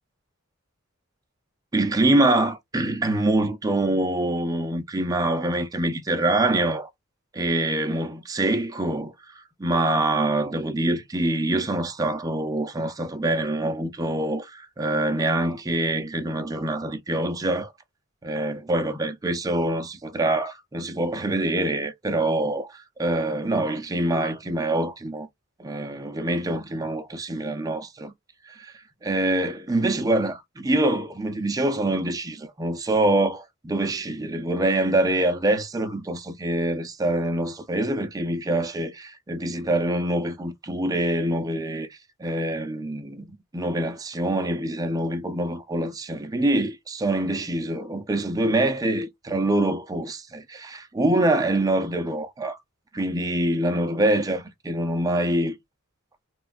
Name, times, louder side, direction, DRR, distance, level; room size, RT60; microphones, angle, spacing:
voice 1, 1.7-6.9 7.3-17.7 18.2-25.3 25.6-28.1 28.5-28.7 29.0-41.9 42.2-52.6 52.9-55.6, right 1 dB, 15° right, 0.4 m, -25 dB
3.0 x 2.2 x 2.4 m
head